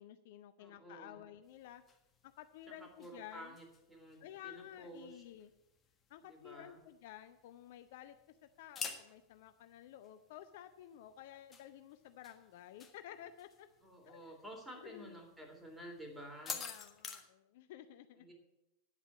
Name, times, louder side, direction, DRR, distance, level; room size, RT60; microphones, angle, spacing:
voice 1, 0.0-1.8 2.2-3.6 4.2-5.5 6.1-8.2 8.4-13.7 14.1-14.3 14.8-15.2 16.5-18.3, left 11 dB, 50° left, 11 dB, 0.6 m, -53 dB
voice 2, 0.6-1.2 2.7-5.2 6.2-6.8 13.8-16.6 18.2-18.3, equal, ahead, 1 dB, 3.3 m, -52 dB
sound 1, 1.4-17.2, left 5 dB, 20° left, 1.5 m, -52 dB
9.9 x 8.1 x 8.6 m, 0.92 s
figure-of-eight pair, 90°, 0 cm